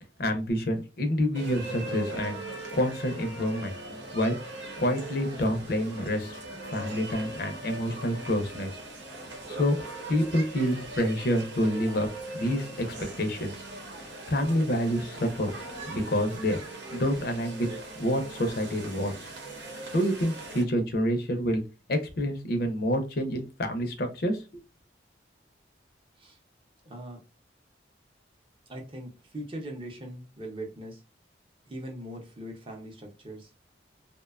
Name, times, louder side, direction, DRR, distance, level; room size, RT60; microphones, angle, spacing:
voice 1, 0.2-3.7 4.1-4.4 4.8-6.4 6.7-8.7 9.5-9.8 10.1-12.1 12.3-12.9 13.2-13.6 14.0-15.5 15.9-17.7 18.0-19.1 19.9-21.6 21.9-24.6, equal, 55° left, 6 dB, 0.5 m, -28 dB
sound 1, 1.3-20.6, right 2 dB, 80° right, 0.9 m, -40 dB
voice 2, 26.8-27.2 28.7-31.0 31.7-33.6, right 1 dB, 30° right, 2 dB, 0.6 m, -41 dB
2.6 x 2.2 x 2.3 m, 0.30 s
head